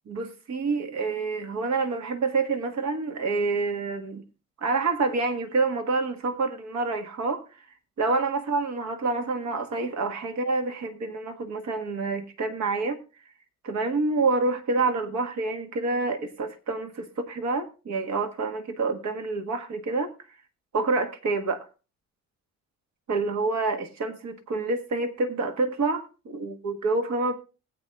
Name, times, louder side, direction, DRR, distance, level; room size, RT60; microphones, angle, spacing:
voice 1, 0.1-4.2 4.6-7.4 8.0-13.0 13.6-20.1 20.7-21.6 23.1-27.4, right 3 dB, 65° right, 6 dB, 1.7 m, -27 dB
20.5 x 8.1 x 2.4 m, 0.32 s
cardioid pair, 90°, 30 cm